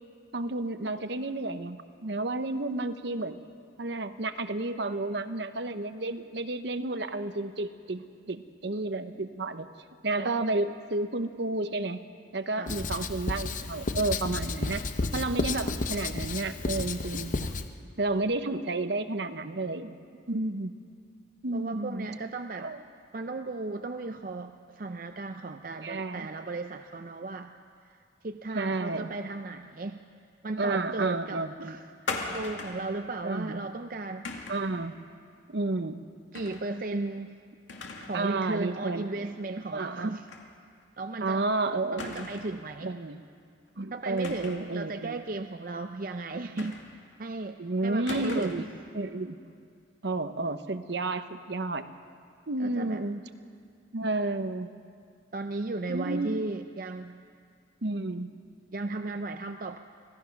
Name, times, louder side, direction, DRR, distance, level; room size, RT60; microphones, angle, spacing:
voice 1, 0.3-3.4 3.8-9.7 10.0-12.0 12.3-17.5 18.0-20.8 21.4-22.1 22.6-22.8 25.8-26.3 28.5-29.1 30.6-31.8 33.2-33.7 34.5-34.9 35.5-36.0 38.1-39.1 39.7-40.1 41.2-42.3 42.8-43.2 43.8-45.2 47.6-48.6 48.9-49.4 50.0-51.8 52.5-53.2 53.9-54.7 55.9-56.4 57.8-58.3, right 2 dB, 65° right, 10 dB, 0.9 m, -31 dB
Writing, 12.7-17.7, left 3 dB, 45° left, 0.8 m, -32 dB
voice 2, 21.5-22.7 23.1-27.5 27.8-28.0 28.2-30.0 30.4-34.3 36.3-37.4 38.0-40.3 41.0-41.4 41.9-43.0 43.9-48.7 52.6-53.0 55.3-57.2 58.7-59.8, right 3 dB, 45° right, 7 dB, 0.5 m, -35 dB
sound 1, 32.1-32.9 34.2-34.7 36.3-36.7 37.0-37.1 37.7-38.2 38.6-38.7 40.3-40.5 40.8-40.9 42.0-42.6 44.2-44.7 46.6-47.1 48.1-48.7, left 3 dB, 90° left, 2.4 m, -38 dB
25.0 x 17.5 x 5.9 m, 2.3 s
head